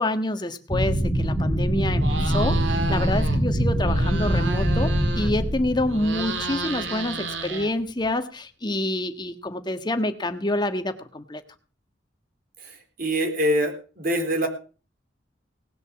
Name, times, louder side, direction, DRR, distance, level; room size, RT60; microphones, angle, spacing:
voice 1, 0.0-11.4, left 1 dB, 25° left, 8 dB, 1.5 m, -27 dB
sound 1, 0.7-6.9, equal, 10° right, 2.9 m, -24 dB
sound 2, 2.0-3.4 3.7-5.5 5.8-8.1, right 3 dB, 90° right, 2.2 m, -32 dB
voice 2, 13.0-14.5, equal, 50° right, 4 dB, 3.8 m, -24 dB
18.5 x 8.0 x 7.2 m, 0.38 s
head